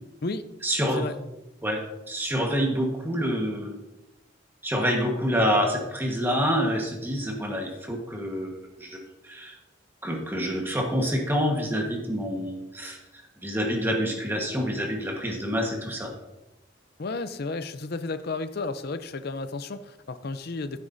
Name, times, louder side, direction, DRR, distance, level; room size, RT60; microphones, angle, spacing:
voice 1, 0.6-1.1 1.6-1.8 2.1-3.8 4.6-8.5 8.8-9.6 10.0-16.1, equal, 10° right, 1 dB, 1.3 m, -27 dB
voice 2, 17.0-20.8, left 3 dB, 55° left, 11 dB, 0.6 m, -32 dB
12.0 x 10.0 x 2.7 m, 0.96 s
head